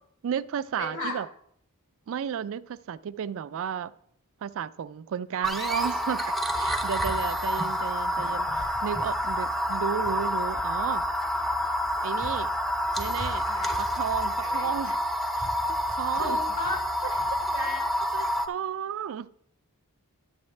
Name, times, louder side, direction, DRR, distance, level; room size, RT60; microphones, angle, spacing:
voice 1, 0.2-1.3 2.1-3.9 4.4-11.1 12.0-12.5 13.0-13.5 13.8-15.0 15.4-16.4 17.0-17.4 18.1-19.3, right 8 dB, 65° right, 0.3 m, -33 dB
voice 2, 0.8-1.1 13.5-13.8 14.4-14.7 16.2-16.8 17.5-17.8, left 2 dB, 60° left, 3.6 m, -34 dB
sound 1, 5.4-18.5, equal, ahead, 0.5 m, -28 dB
11.0 x 7.9 x 3.2 m
head